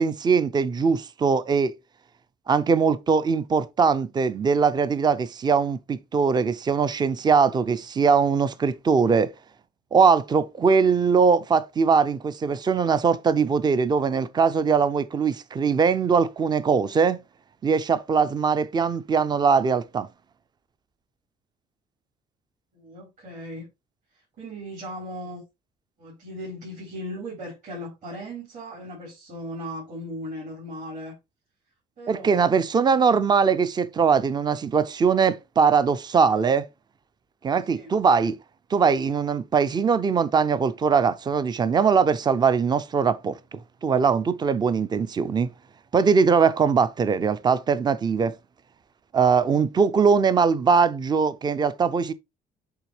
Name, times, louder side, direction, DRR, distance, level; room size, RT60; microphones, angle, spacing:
voice 1, 0.0-1.7 2.5-9.3 9.9-17.2 17.6-20.1 32.1-36.7 37.4-38.4 38.7-45.5 45.9-48.3 49.1-52.1, right 5 dB, 25° right, 0.5 m, -21 dB
voice 2, 22.7-23.7 24.4-25.4 26.0-31.2 32.0-32.6 37.7-37.9, equal, 50° right, 4.1 m, -37 dB
8.0 x 3.8 x 3.2 m
cardioid pair, 110°, 17 cm